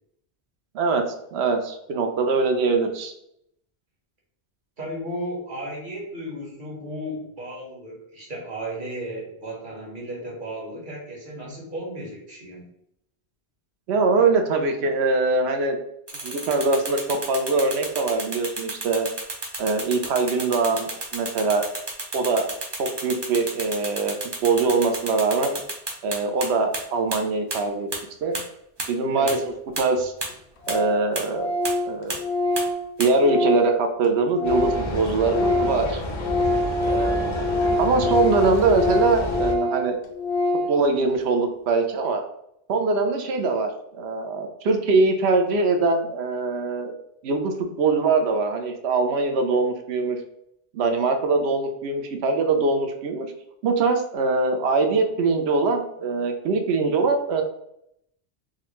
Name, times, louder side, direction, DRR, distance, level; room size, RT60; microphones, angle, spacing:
voice 1, 0.7-3.1 13.9-15.8 16.2-19.1 19.6-21.7 22.1-22.5 22.8-24.1 24.4-25.6 26.0-27.9 28.2-28.4 28.9-30.1 30.7-31.5 31.9-32.2 33.0-36.0 36.9-37.3 37.8-40.0 40.7-42.2 42.7-46.9 47.2-50.2 50.7-53.3 53.6-57.4, right 3 dB, 90° right, 5 dB, 0.9 m, -23 dB
voice 2, 4.8-12.7 29.1-29.4 36.8-37.2, right 1 dB, 50° right, -3 dB, 1.3 m, -35 dB
sound 1, 16.1-26.5 26.7-26.8 27.1-27.2 27.5-27.6 27.9-28.0 28.3-28.4 28.8-28.9 29.3-29.4 29.8-29.9 30.2-30.3 30.7-30.8 31.2-31.3 31.6-31.7 32.1-32.2 32.6-32.7 33.0-33.1, right 2 dB, 30° right, 0.6 m, -30 dB
Organ, 29.7-29.8 30.0-30.1 30.3-30.4 30.6-31.0 31.3-34.9 35.2-40.8, left 1 dB, 85° left, 0.9 m, -25 dB
sound 2, 34.4-39.5, left 1 dB, 50° left, 0.3 m, -30 dB
3.6 x 2.2 x 2.9 m, 0.75 s
omnidirectional pair, 1.1 m